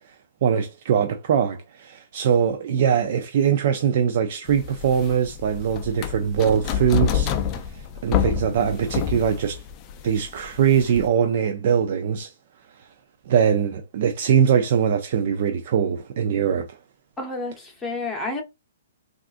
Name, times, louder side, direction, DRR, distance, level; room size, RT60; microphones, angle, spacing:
voice 1, 0.4-7.4 8.0-9.6 10.0-12.3 13.3-16.8, right 8 dB, 50° right, 0.4 m, -22 dB
sound 1, 4.5-11.1, left 9 dB, 25° left, 0.4 m, -28 dB
voice 2, 17.2-18.4, left 2 dB, 10° left, 0.8 m, -30 dB
3.6 x 2.4 x 2.4 m
hypercardioid pair, 150°, 0 cm